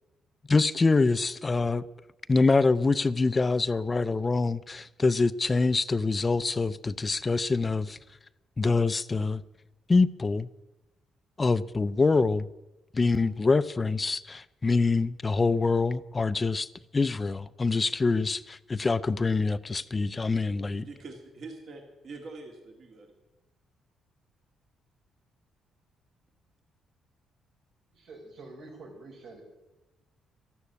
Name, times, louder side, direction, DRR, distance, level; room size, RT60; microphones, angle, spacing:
voice 1, 0.5-1.8 2.3-8.0 8.6-9.4 9.9-10.5 11.4-12.5 12.9-16.7 16.9-20.9, left 3 dB, 25° left, 0.5 m, -25 dB
voice 2, 20.8-23.1, right 3 dB, 55° right, 2.4 m, -44 dB
voice 3, 27.9-29.4, right 2 dB, 75° right, 5.3 m, -47 dB
13.0 x 11.5 x 8.4 m
cardioid pair, 90°, 0 cm